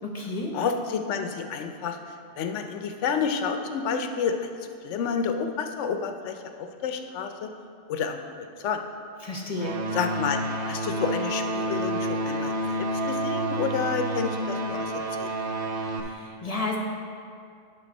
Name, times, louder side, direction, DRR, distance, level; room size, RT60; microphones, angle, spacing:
voice 1, 0.0-0.6 9.2-9.8 16.0-16.8, left 2 dB, 35° left, 0 dB, 0.9 m, -32 dB
voice 2, 0.5-2.0 2.4-4.5 4.8-7.5 7.9-8.8 9.9-10.4 10.7-14.9 15.2-15.3, left 6 dB, 80° left, 6 dB, 0.9 m, -30 dB
sound 1, 9.6-16.0, right 1 dB, 70° right, 0.9 m, -29 dB
11.0 x 3.9 x 5.3 m, 2.3 s
omnidirectional pair, 1.2 m